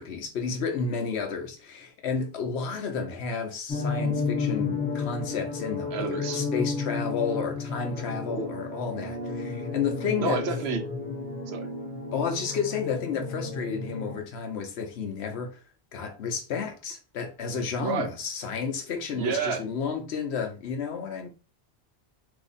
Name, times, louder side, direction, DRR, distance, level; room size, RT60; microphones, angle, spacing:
voice 1, 0.0-10.4 12.1-15.6 15.9-21.3, left 6 dB, 90° left, 1.0 m, -31 dB
sound 1, 3.7-14.2, left 4 dB, 10° left, 0.7 m, -32 dB
voice 2, 5.9-6.4 7.9-8.5 10.2-10.8 11.5-11.7 17.8-18.1 19.1-19.6, right 6 dB, 80° right, 0.9 m, -30 dB
2.9 x 2.4 x 3.9 m
omnidirectional pair, 1.1 m